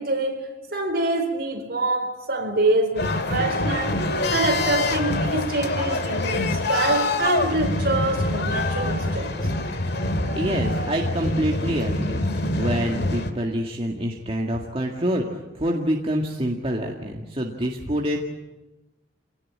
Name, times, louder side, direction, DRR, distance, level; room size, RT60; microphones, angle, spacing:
voice 1, 0.0-4.0 4.3-9.4, right 2 dB, 55° right, 4.5 m, -25 dB
sound 1, 2.9-13.3, left 2 dB, 60° left, 2.1 m, -25 dB
voice 2, 10.3-18.2, equal, 30° right, 2.0 m, -26 dB
26.5 x 18.5 x 8.6 m
head